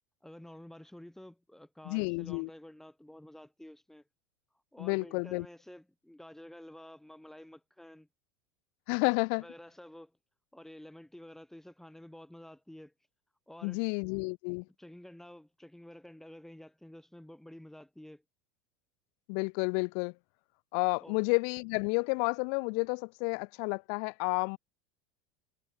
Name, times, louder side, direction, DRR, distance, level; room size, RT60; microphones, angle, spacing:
voice 1, 0.2-4.0 4.7-8.1 9.4-10.1 10.5-12.9 13.5-13.9 14.8-18.2 21.0-21.2, left 1 dB, 5° left, 2.9 m, -51 dB
voice 2, 1.9-2.5 4.8-5.5 8.9-9.4 13.6-14.7 19.3-20.1 20.7-24.6, left 40 dB or more, 50° left, 0.5 m, -31 dB
figure-of-eight pair, 80°, 13 cm